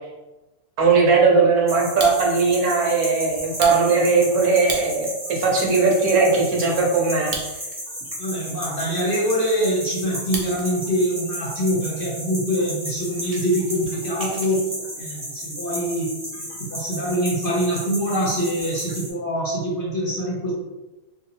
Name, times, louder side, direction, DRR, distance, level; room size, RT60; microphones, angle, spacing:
voice 1, 0.8-7.4, right 4 dB, 75° right, -1 dB, 1.3 m, -19 dB
sound 1, 1.7-19.1, equal, 20° right, 0.8 m, -34 dB
Fire, 1.8-2.6 3.0-3.1 3.5-5.2 5.7-5.8 6.0-6.4 7.1-8.0 8.3-8.4 8.9-10.7 11.0-11.4 12.0-12.1 12.4-12.5 12.8-14.6, right 3 dB, 55° right, 0.7 m, -35 dB
voice 2, 8.2-14.6 15.0-16.1 16.4-20.5, equal, 45° left, -4 dB, 0.9 m, -24 dB
2.9 x 2.6 x 4.1 m, 1.1 s
omnidirectional pair, 1.6 m